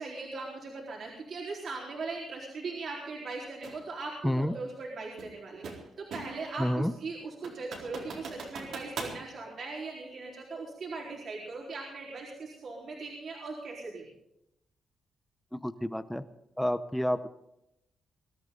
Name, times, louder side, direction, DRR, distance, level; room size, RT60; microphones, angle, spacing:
voice 1, 0.0-14.0, right 3 dB, 55° right, -3 dB, 4.1 m, -39 dB
sound 1, 3.6-3.8 5.2-6.5 6.9-7.0 7.4-9.2, right 4 dB, 75° right, 4.1 m, -41 dB
voice 2, 4.2-4.6 6.6-6.9 15.5-16.2 16.6-17.3, equal, 5° left, 11 dB, 0.7 m, -29 dB
23.0 x 13.0 x 3.9 m, 0.84 s
cardioid pair, 130°, 0 cm